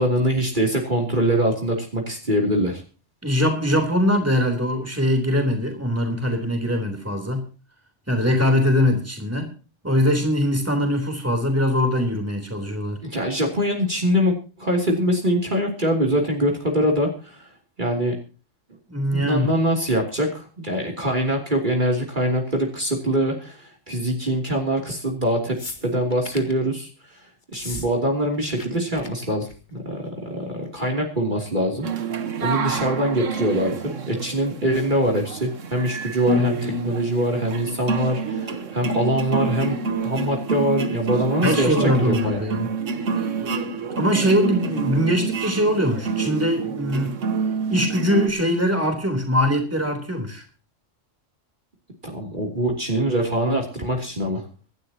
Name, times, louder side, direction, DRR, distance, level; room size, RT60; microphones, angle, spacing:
voice 1, 0.0-2.8 13.0-17.5 17.8-18.1 19.1-25.6 25.8-26.9 27.5-31.9 32.4-42.4 52.0-54.4, equal, 40° right, 0 dB, 3.2 m, -23 dB
voice 2, 3.2-7.4 8.1-9.5 9.8-13.0 18.9-19.5 41.4-42.7 43.6-47.1 47.7-50.4, equal, 10° right, 4 dB, 3.6 m, -22 dB
sound 1, 25.6-26.6 27.4-27.9 28.1-28.7 28.9-29.1 29.4-29.7 30.7-30.8, left 3 dB, 40° left, 2.0 m, -37 dB
sound 2, 31.8-48.3, right 4 dB, 80° right, 1.6 m, -28 dB
25.5 x 11.5 x 2.9 m, 0.35 s
omnidirectional pair, 1.3 m